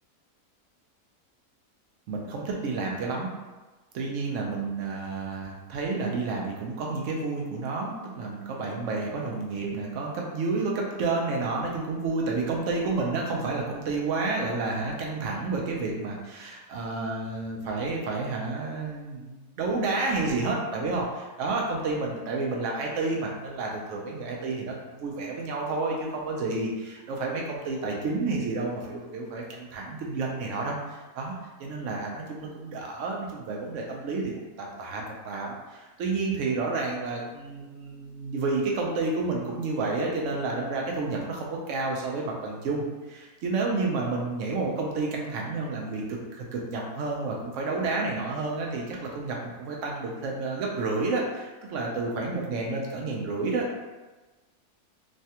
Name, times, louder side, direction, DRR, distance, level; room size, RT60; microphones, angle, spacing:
voice 1, 2.1-3.3 3.9-31.3 31.6-53.8, right 3 dB, 65° right, -1 dB, 0.8 m, -30 dB
3.2 x 2.2 x 2.7 m, 1.2 s
omnidirectional pair, 1.6 m